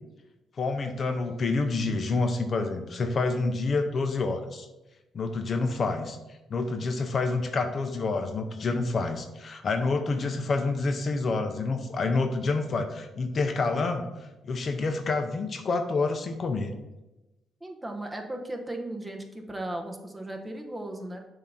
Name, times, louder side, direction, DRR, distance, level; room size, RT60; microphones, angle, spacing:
voice 1, 0.6-4.7 5.1-6.2 6.5-14.1 14.4-16.7, left 3 dB, 45° left, 7 dB, 0.6 m, -28 dB
voice 2, 17.6-21.2, right 1 dB, 15° right, 3 dB, 0.9 m, -36 dB
7.2 x 2.7 x 5.8 m, 1.0 s
cardioid pair, 90°, 0 cm